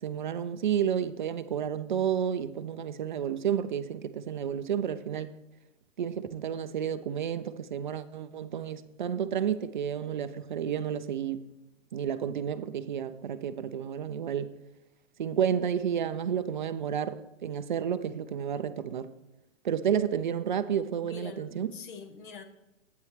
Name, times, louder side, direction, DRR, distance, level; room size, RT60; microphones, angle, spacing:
voice 1, 0.0-5.3 6.0-11.5 11.9-14.5 15.2-19.1 19.6-21.7, right 8 dB, 40° right, 0.4 m, -31 dB
voice 2, 21.0-22.4, left 5 dB, 40° left, 1.1 m, -45 dB
11.5 x 9.0 x 3.2 m
hypercardioid pair, 155°, 39 cm